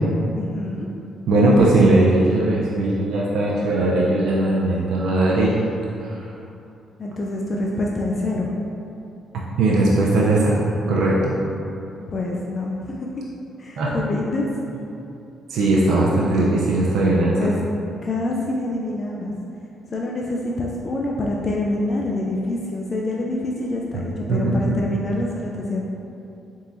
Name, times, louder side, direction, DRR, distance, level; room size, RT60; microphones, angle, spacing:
voice 1, 0.4-0.9 7.0-8.5 12.1-13.0 13.6-14.5 17.4-17.6 18.0-19.3 19.9-25.8, left 2 dB, 40° left, -2 dB, 0.4 m, -26 dB
voice 2, 1.3-5.6 6.0-6.2 9.6-11.3 13.8-13.9 15.5-17.5 23.9-24.0 24.3-24.8, right 2 dB, 80° right, -5 dB, 0.5 m, -19 dB
4.1 x 3.7 x 2.6 m, 2.7 s
cardioid pair, 90°, 0 cm